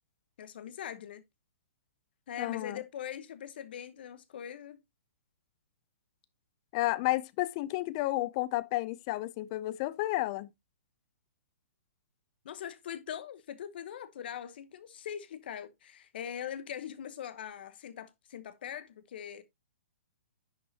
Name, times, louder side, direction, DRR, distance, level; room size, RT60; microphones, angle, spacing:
voice 1, 0.4-1.2 2.3-4.8 12.4-19.4, left 9 dB, 50° left, 0.9 m, -42 dB
voice 2, 2.4-2.8 6.7-10.5, left 17 dB, 25° left, 0.4 m, -31 dB
10.0 x 5.9 x 2.8 m
hypercardioid pair, 160°, 7 cm